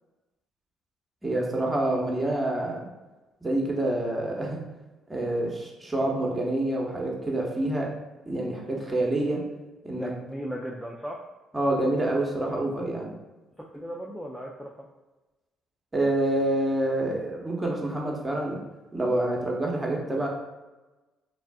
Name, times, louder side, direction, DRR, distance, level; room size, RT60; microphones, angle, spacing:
voice 1, 1.2-2.9 3.4-4.6 5.1-7.9 8.3-9.4 9.8-10.1 11.5-13.1 15.9-18.6 18.9-20.3, right 1 dB, 15° right, -2 dB, 0.8 m, -27 dB
voice 2, 9.9-11.2 13.7-14.7, equal, ahead, -2 dB, 0.4 m, -36 dB
3.4 x 2.3 x 2.2 m, 1.1 s
supercardioid pair, 70°, 0 cm